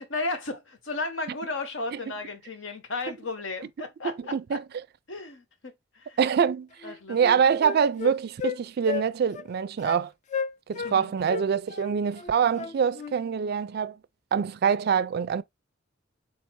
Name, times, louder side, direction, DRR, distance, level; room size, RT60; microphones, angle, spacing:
voice 1, 0.0-4.6 5.1-6.2 6.8-7.4 10.8-11.1, left 3 dB, 75° left, 1.0 m, -34 dB
voice 2, 4.0-4.6 6.2-6.7 7.1-10.1 10.7-14.0 14.3-15.4, right 7 dB, 55° right, 0.3 m, -25 dB
Wind instrument woodwind instrument, 6.4-6.5 6.8-8.6 8.9-9.1 9.3-9.5 9.8-10.0 10.3-11.0 11.3-13.2, left 6 dB, 40° left, 0.4 m, -33 dB
3.8 x 2.6 x 4.5 m
head